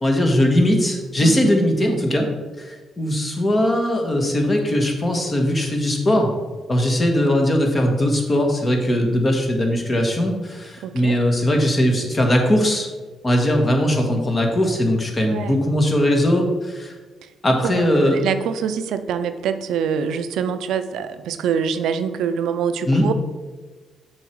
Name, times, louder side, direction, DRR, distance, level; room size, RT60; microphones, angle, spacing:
voice 1, 0.0-2.3 2.6-6.3 6.7-12.9 13.2-16.9 17.4-18.2 22.9-23.1, left 1 dB, 30° left, 3 dB, 1.5 m, -19 dB
voice 2, 1.2-1.5 10.8-11.2 15.2-15.6 17.6-23.1, right 7 dB, 80° right, 10 dB, 0.4 m, -25 dB
7.0 x 4.9 x 4.6 m, 1.3 s
cardioid pair, 90°, 0 cm